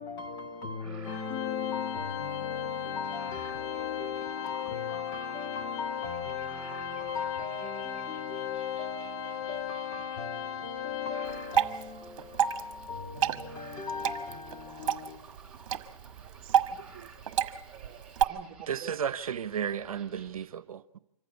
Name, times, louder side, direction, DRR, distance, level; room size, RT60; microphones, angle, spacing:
voice 1, 0.0-15.2, left 4 dB, 20° left, 1.7 m, -39 dB
sound 1, 0.8-20.5, right 5 dB, 5° right, 3.7 m, -54 dB
Organ, 1.0-11.8, left 10 dB, 65° left, 2.2 m, -36 dB
Water / Drip, 11.2-18.2, right 9 dB, 60° right, 1.5 m, -30 dB
voice 2, 16.2-17.1 17.7-19.0, right 11 dB, 35° right, 1.8 m, -49 dB
voice 3, 18.7-21.0, right 8 dB, 80° right, 1.0 m, -33 dB
26.0 x 15.0 x 8.2 m
hypercardioid pair, 140°, 18 cm